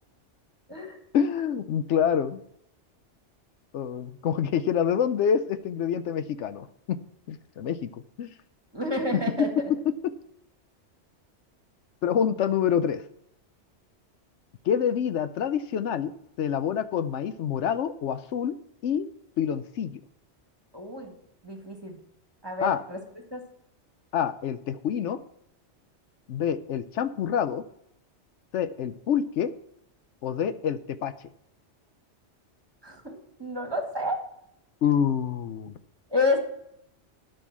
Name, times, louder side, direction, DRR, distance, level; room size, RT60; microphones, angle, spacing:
voice 1, 1.1-2.4 3.7-7.0 7.3-7.9 8.2-8.3 9.1-10.1 12.0-13.0 14.6-16.1 16.4-18.6 18.8-19.1 19.4-20.0 22.6-22.8 24.1-25.2 26.3-27.6 28.5-29.5 30.2-31.1 34.8-35.7, left 8 dB, 80° left, 12 dB, 1.0 m, -27 dB
voice 2, 8.7-9.5 20.7-21.1 21.4-22.0 22.4-23.0 23.3-23.4 32.8-34.2 36.1-36.4, left 2 dB, 20° right, 3 dB, 1.9 m, -29 dB
12.5 x 5.5 x 7.2 m, 0.76 s
omnidirectional pair, 1.2 m